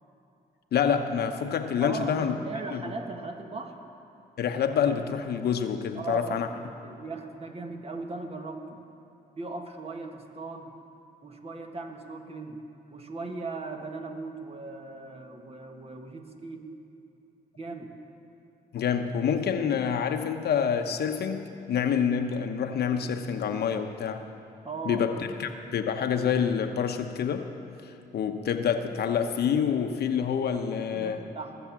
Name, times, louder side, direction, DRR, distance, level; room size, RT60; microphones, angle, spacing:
voice 1, 0.7-2.4 2.7-2.8 4.4-6.5 18.7-24.2 24.8-25.3 25.7-27.5 27.8-31.2, left 7 dB, 70° left, 7 dB, 0.9 m, -27 dB
voice 2, 1.8-3.8 6.0-8.8 9.4-10.8 11.2-12.6 12.9-16.7 17.6-17.9 24.6-25.1 30.8-31.6, right 3 dB, 35° right, 4 dB, 1.6 m, -38 dB
19.5 x 7.2 x 7.4 m, 2.8 s
cardioid pair, 70°, 17 cm